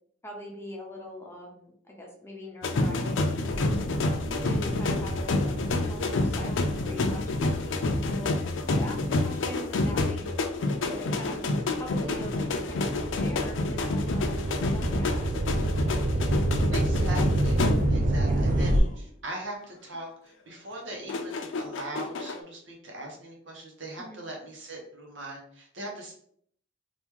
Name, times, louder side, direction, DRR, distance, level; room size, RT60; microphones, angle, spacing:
voice 1, 0.2-3.8 4.3-8.4 8.7-10.3 10.8-11.4 11.8-15.3 18.3-18.5 24.0-24.2, equal, 15° left, -1 dB, 0.8 m, -42 dB
sound 1, 2.6-18.2 18.5-18.9 21.1-22.4, left 2 dB, 85° left, 0.4 m, -28 dB
sound 2, 3.5-10.2 10.8-18.8, right 1 dB, 45° right, 0.4 m, -30 dB
voice 2, 16.7-17.6 17.9-26.1, right 1 dB, 75° right, -1 dB, 1.1 m, -40 dB
2.9 x 2.6 x 3.6 m, 0.64 s
head